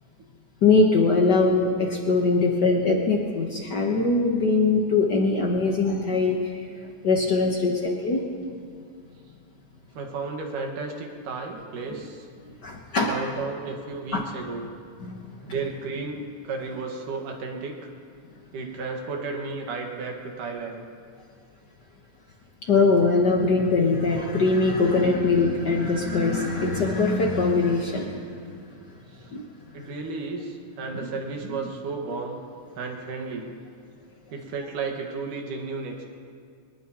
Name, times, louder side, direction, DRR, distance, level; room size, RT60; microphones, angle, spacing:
voice 1, 0.6-6.6 7.0-8.2 11.9-12.0 12.6-13.2 14.1-14.2 15.0-15.3 22.7-28.3 29.3-29.4, left 3 dB, 70° left, 0 dB, 1.0 m, -22 dB
voice 2, 7.2-7.8 9.9-12.2 13.1-14.6 15.4-17.9 18.5-20.8 29.7-32.4 32.8-33.5 34.3-36.1, right 4 dB, 85° right, 2 dB, 3.2 m, -33 dB
24.0 x 19.0 x 2.9 m, 2.3 s
omnidirectional pair, 3.6 m